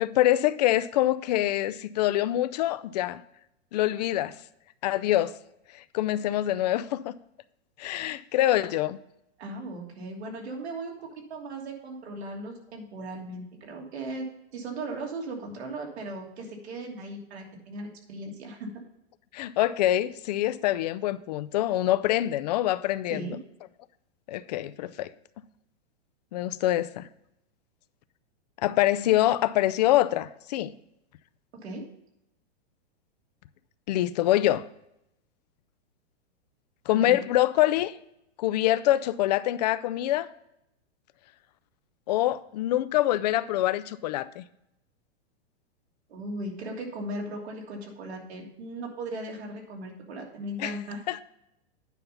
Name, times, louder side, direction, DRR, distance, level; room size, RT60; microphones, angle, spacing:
voice 1, 0.0-3.2 3.7-4.3 4.8-5.3 5.9-7.2 7.8-9.0 19.3-23.3 24.3-25.1 26.3-27.1 28.6-30.7 33.9-34.6 36.9-37.9 38.4-40.3 42.1-44.4 50.6-50.8 51.1-51.2, left 14 dB, 40° left, 0.4 m, -25 dB
voice 2, 9.4-14.3 14.5-18.8 23.1-23.4 31.5-31.8 36.9-37.2 46.1-51.0, right 2 dB, 75° right, 2.9 m, -37 dB
9.3 x 5.3 x 5.6 m
supercardioid pair, 155°, 33 cm